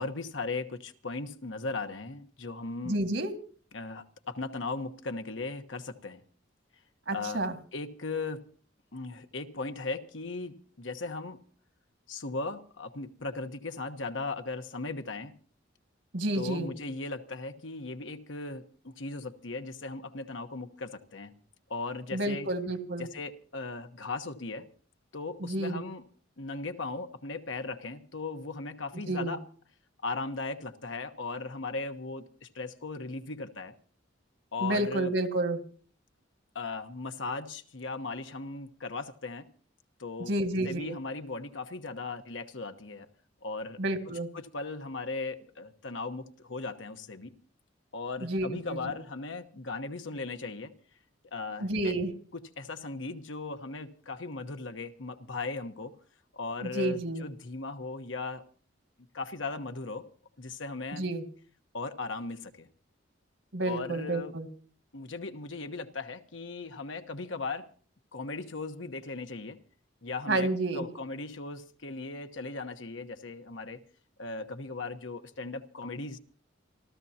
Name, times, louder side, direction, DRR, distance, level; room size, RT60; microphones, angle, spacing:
voice 1, 0.0-3.0 3.7-6.2 7.1-7.4 7.7-8.4 8.9-11.4 12.1-15.4 16.3-21.3 21.7-22.5 23.0-24.7 25.1-26.0 26.4-29.4 30.0-33.7 34.5-35.1 36.5-39.5 40.0-40.3 40.6-43.1 43.4-43.8 44.1-47.3 47.9-50.7 51.3-51.9 52.3-55.9 56.3-58.4 59.1-60.1 60.4-61.1 61.7-62.7 63.6-64.3 64.9-67.7 68.1-69.6 70.0-73.8 74.2-76.2, left 3 dB, 75° left, 1.2 m, -37 dB
voice 2, 2.8-3.3 7.1-7.5 16.1-16.7 22.1-23.1 25.4-25.8 29.1-29.3 34.6-35.6 40.2-40.9 43.8-44.3 48.2-48.9 51.6-52.1 56.6-57.2 60.9-61.2 63.5-64.5 70.3-70.9, right 1 dB, 70° right, 2.1 m, -30 dB
28.5 x 14.0 x 2.9 m
head